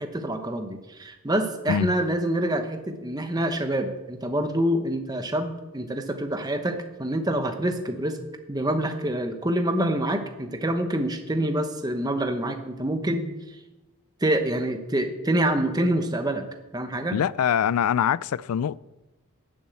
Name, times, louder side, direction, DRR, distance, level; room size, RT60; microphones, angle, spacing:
voice 1, 0.0-8.2 8.5-13.4 14.2-16.5 16.7-17.2, right 1 dB, 20° right, 0.9 m, -26 dB
voice 2, 17.1-18.8, left 8 dB, 85° left, 0.4 m, -23 dB
12.0 x 7.3 x 8.3 m
head